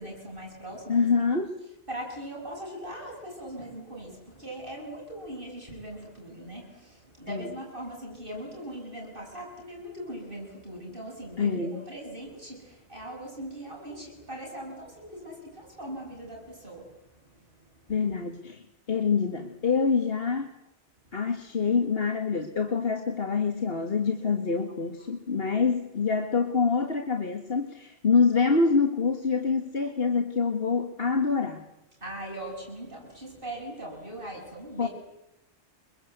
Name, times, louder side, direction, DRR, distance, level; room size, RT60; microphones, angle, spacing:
voice 1, 0.0-1.1 1.9-17.9 21.0-21.1 32.0-34.9, right 1 dB, 50° right, -1 dB, 7.5 m, -40 dB
voice 2, 0.9-1.5 7.3-7.5 11.4-11.8 17.9-18.6 18.9-20.5 21.1-31.6 34.8-34.9, left 5 dB, 55° left, 6 dB, 2.0 m, -26 dB
29.0 x 23.5 x 8.1 m, 0.90 s
omnidirectional pair, 1.2 m